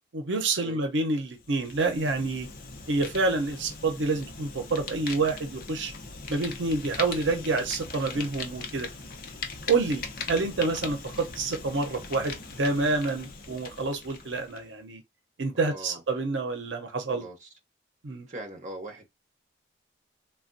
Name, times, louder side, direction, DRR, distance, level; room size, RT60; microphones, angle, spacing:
voice 1, 0.1-2.5 2.9-5.9 6.3-8.9 9.7-15.0 15.4-17.2 18.0-18.3, right 3 dB, 80° right, 0.7 m, -28 dB
Fire, 1.3-14.6, left 4 dB, 50° left, 0.6 m, -40 dB
voice 2, 15.5-16.0 17.1-17.5 18.3-19.1, right 1 dB, 40° right, 0.8 m, -41 dB
3.3 x 2.2 x 2.5 m
head